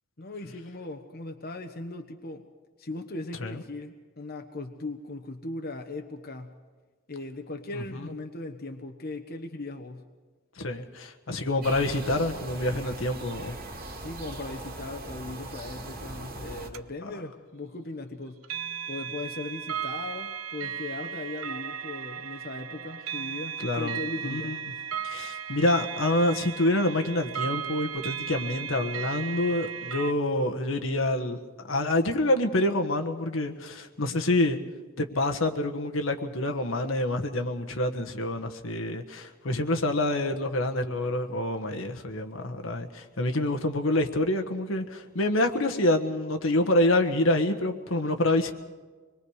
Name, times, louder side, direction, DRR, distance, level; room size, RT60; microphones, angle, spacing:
voice 1, 0.2-2.4 2.8-6.6 7.1-10.1 14.0-18.4 18.9-24.6, left 2 dB, 50° left, 4 dB, 1.1 m, -38 dB
voice 2, 7.7-8.1 10.6-13.5 17.0-17.1 23.6-24.6 25.0-31.4 31.6-34.6 35.0-48.5, left 1 dB, 75° left, 4 dB, 1.4 m, -27 dB
sound 1, 11.6-16.7, right 2 dB, 45° right, 2.3 m, -40 dB
sound 2, 16.7-16.8 18.4-30.1, right 8 dB, 90° right, 0.7 m, -36 dB
25.5 x 21.5 x 4.9 m, 1.4 s
head